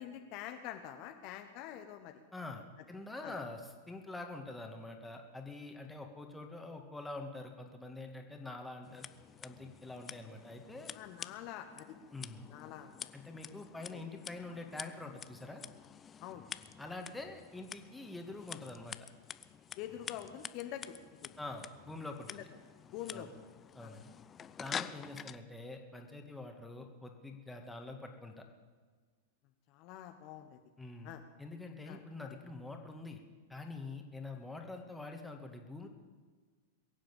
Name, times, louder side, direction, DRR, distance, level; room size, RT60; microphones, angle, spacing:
voice 1, 0.0-2.2 3.2-3.4 10.9-11.9 12.5-13.1 13.9-14.0 16.2-16.5 19.8-21.0 21.2-21.4 22.3-22.4 22.9-23.3 23.8-23.9 24.7-24.8 29.7-30.6 31.0-31.2 31.9-32.0, left 11 dB, 45° left, 6 dB, 1.1 m, -46 dB
voice 2, 2.3-3.6 3.9-9.0 9.4-10.9 12.1-12.5 13.1-15.6 16.8-19.0 21.4-22.3 23.1-23.3 23.7-24.1 24.6-28.4 30.8-31.1 31.4-33.2 33.5-35.9, left 2 dB, 5° left, 3 dB, 2.0 m, -45 dB
Scissors, 8.8-25.4, left 8 dB, 25° left, 0.5 m, -48 dB
22.0 x 7.6 x 7.4 m, 1.5 s
hypercardioid pair, 100°, 0 cm